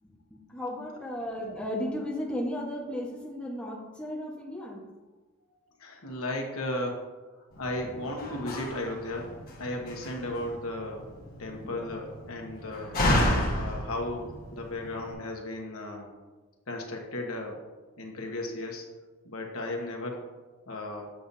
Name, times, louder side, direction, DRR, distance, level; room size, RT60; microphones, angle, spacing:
voice 1, 0.0-4.8 7.8-7.9 11.6-11.9, left 1 dB, 5° left, -3 dB, 1.2 m, -35 dB
voice 2, 5.8-7.0 7.6-9.3 9.6-11.1 11.4-13.0 13.5-16.1 16.7-17.6 18.0-18.9 19.2-20.2 20.7-21.1, left 1 dB, 75° left, 1 dB, 1.3 m, -35 dB
Slam, 7.5-15.1, left 1 dB, 45° left, 1.4 m, -32 dB
7.6 x 6.9 x 2.7 m, 1.3 s
head